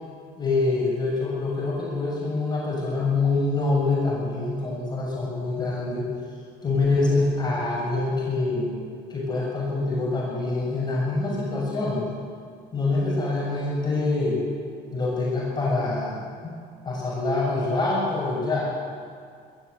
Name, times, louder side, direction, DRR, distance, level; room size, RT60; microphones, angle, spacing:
voice 1, 0.4-6.1 6.6-8.7 9.1-12.1 12.7-14.4 14.9-16.2 16.4-16.5 16.8-18.7, left 3 dB, 25° left, -4 dB, 7.0 m, -25 dB
22.5 x 14.5 x 8.4 m, 2.2 s
cardioid pair, 110°, 17 cm